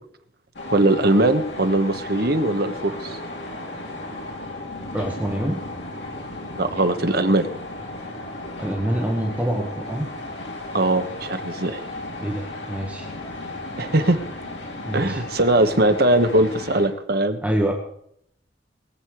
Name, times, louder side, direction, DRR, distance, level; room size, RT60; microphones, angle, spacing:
sound 1, 0.5-16.9, left 2 dB, 80° left, 3.2 m, -35 dB
voice 1, 0.7-3.2 6.6-7.5 10.7-11.9 13.8-14.2 14.9-17.4, right 1 dB, 60° right, 8 dB, 1.3 m, -20 dB
voice 2, 4.9-5.6 8.6-10.1 12.2-13.1 14.8-15.2 17.4-17.7, right 1 dB, 10° right, 0 dB, 1.6 m, -25 dB
21.5 x 8.4 x 4.9 m, 0.70 s
head